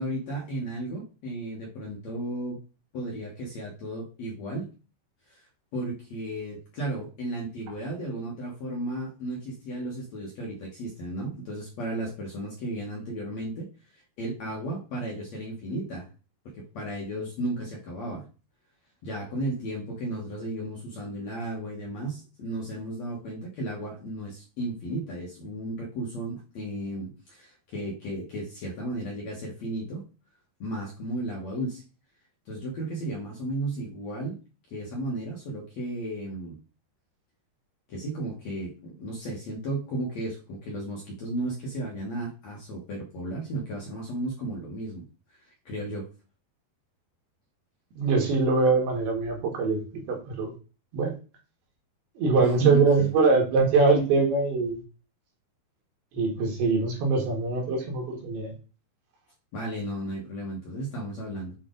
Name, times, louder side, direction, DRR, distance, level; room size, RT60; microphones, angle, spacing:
voice 1, 0.0-2.6 2.9-4.7 5.3-5.4 5.7-13.7 14.2-16.1 16.6-18.2 19.0-30.0 30.6-31.8 32.5-34.4 34.7-36.6 37.9-45.0 45.4-46.1 52.6-53.1 59.5-61.6, right 1 dB, 60° left, -2 dB, 1.9 m, -34 dB
voice 2, 48.0-49.8 50.1-50.5 50.9-51.1 52.2-54.8 56.1-58.5, right 4 dB, 75° right, 0 dB, 3.7 m, -23 dB
8.3 x 3.4 x 3.8 m, 0.33 s
omnidirectional pair, 4.7 m